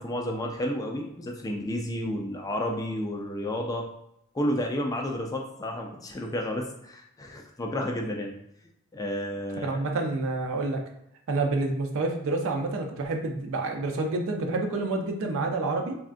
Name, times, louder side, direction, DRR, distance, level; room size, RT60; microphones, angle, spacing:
voice 1, 0.0-3.9 4.3-8.3 8.9-9.8, left 1 dB, 15° left, 1 dB, 0.3 m, -31 dB
voice 2, 9.6-10.8 11.3-16.0, right 3 dB, 65° right, 3 dB, 0.5 m, -28 dB
3.5 x 2.3 x 2.4 m, 0.76 s
head